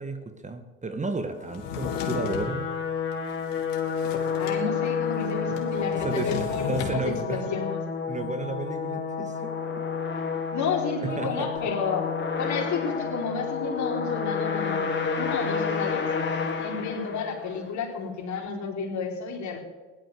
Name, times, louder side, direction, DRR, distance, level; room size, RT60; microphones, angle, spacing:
voice 1, 0.0-2.6 6.0-6.4 6.7-7.5 8.1-9.8 11.0-11.5, right 3 dB, 20° right, 8 dB, 1.6 m, -33 dB
sound 1, 1.4-17.7, left 6 dB, 30° left, 3.6 m, -30 dB
Drawer open or close, 1.5-2.5 3.1-4.6 4.9-5.0 5.2-7.0, left 8 dB, 70° left, 3.3 m, -36 dB
voice 2, 4.4-7.8 10.5-14.9 15.1-16.1 16.6-19.6, left 5 dB, 50° left, 2 dB, 4.3 m, -31 dB
17.0 x 11.5 x 6.9 m, 1.3 s
hypercardioid pair, 70°, 37 cm